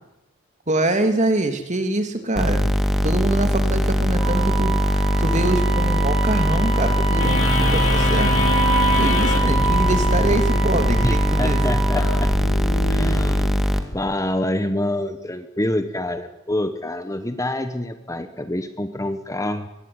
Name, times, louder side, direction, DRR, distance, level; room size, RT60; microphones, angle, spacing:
voice 1, 0.7-2.7 3.0-8.3 8.6-11.6, right 1 dB, 35° right, 7 dB, 3.1 m, -24 dB
sound 1, 2.4-13.8, equal, ahead, 2.1 m, -20 dB
Wind instrument woodwind instrument, 4.2-12.4, right 5 dB, 85° right, 3.1 m, -27 dB
sound 2, 7.2-14.0, left 2 dB, 80° left, 4.2 m, -26 dB
voice 2, 11.0-12.3 12.9-13.6 13.9-19.7, left 1 dB, 15° left, 9 dB, 1.5 m, -26 dB
23.5 x 20.5 x 9.8 m, 0.92 s
head